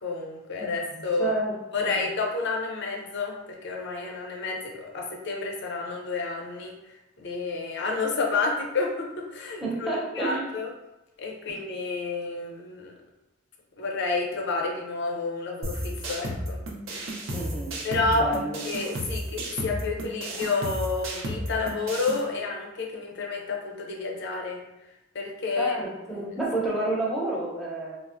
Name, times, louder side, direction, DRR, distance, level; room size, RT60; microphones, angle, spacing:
voice 1, 0.0-1.3 1.7-6.7 7.2-10.7 11.2-13.0 13.8-16.6 17.8-18.3 18.6-24.6 25.1-25.8 26.1-26.2, left 3 dB, 60° left, 1 dB, 0.5 m, -30 dB
voice 2, 1.2-1.5 1.8-2.0 9.6-10.4 17.3-17.7 18.1-18.6 25.6-27.9, right 2 dB, ahead, -5 dB, 0.7 m, -29 dB
sound 1, 15.6-22.2, equal, 75° right, 0.6 m, -33 dB
3.4 x 2.0 x 2.5 m, 0.96 s
head